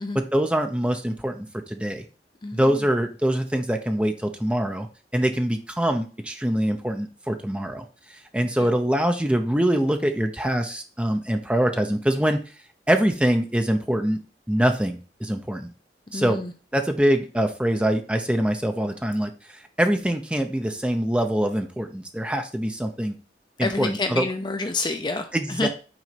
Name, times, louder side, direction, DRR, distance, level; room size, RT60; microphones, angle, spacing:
voice 1, 0.1-2.0 2.5-4.9 5.1-7.8 8.3-12.4 12.9-14.2 14.5-15.7 16.1-16.4 16.7-19.3 19.8-23.1 23.6-24.3 25.3-25.7, right 1 dB, 5° right, 5 dB, 0.8 m, -24 dB
voice 2, 8.4-8.7 16.1-16.5 23.6-25.7, left 3 dB, 25° left, 7 dB, 0.5 m, -28 dB
6.1 x 4.2 x 5.9 m, 0.36 s
head